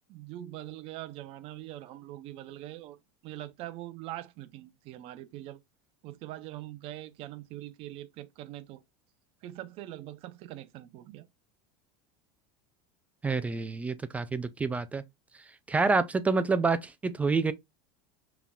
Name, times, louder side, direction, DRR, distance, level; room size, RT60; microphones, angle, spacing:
voice 1, 0.1-3.0 3.2-5.6 6.0-8.8 9.4-11.3, right 14 dB, 40° right, 0.6 m, -43 dB
voice 2, 13.2-15.0 15.7-17.5, right 4 dB, 10° right, 0.3 m, -27 dB
5.8 x 3.5 x 2.3 m
supercardioid pair, 160°, 14 cm